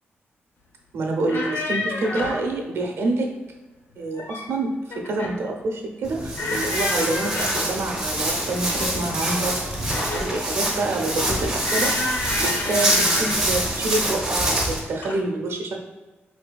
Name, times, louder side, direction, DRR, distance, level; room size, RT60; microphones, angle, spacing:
voice 1, 0.9-3.3 4.0-4.7 5.1-9.6 9.9-15.8, right 2 dB, 85° right, 2 dB, 0.7 m, -27 dB
sound 1, 1.1-2.5 3.9-4.6 4.9-5.4 6.3-7.8 8.7-10.4 11.6-13.5 14.4-14.7 15.0-15.2, left 2 dB, 60° left, 0.5 m, -30 dB
Walk footsteps, 6.0-14.8, right 1 dB, 10° right, 0.8 m, -25 dB
4.0 x 3.3 x 2.3 m, 1.2 s
wide cardioid pair, 175°, 4 cm